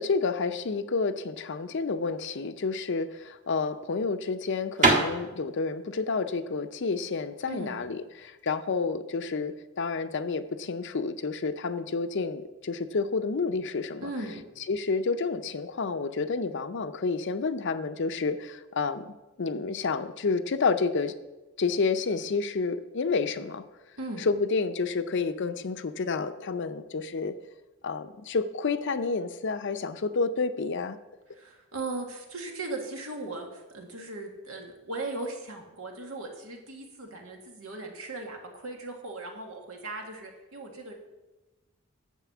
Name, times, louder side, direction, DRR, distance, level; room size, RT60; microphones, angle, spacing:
voice 1, 0.0-14.1 14.7-21.1 21.6-23.6 24.3-27.4 27.8-31.0, left 4 dB, 60° left, 11 dB, 0.6 m, -29 dB
sound 1, 2.9-8.6, right 3 dB, 35° right, 1.6 m, -29 dB
voice 2, 7.5-7.8 14.0-14.4 24.0-24.3 31.3-40.9, right 2 dB, 85° right, 2 dB, 1.9 m, -38 dB
9.2 x 7.4 x 6.1 m, 1.1 s
head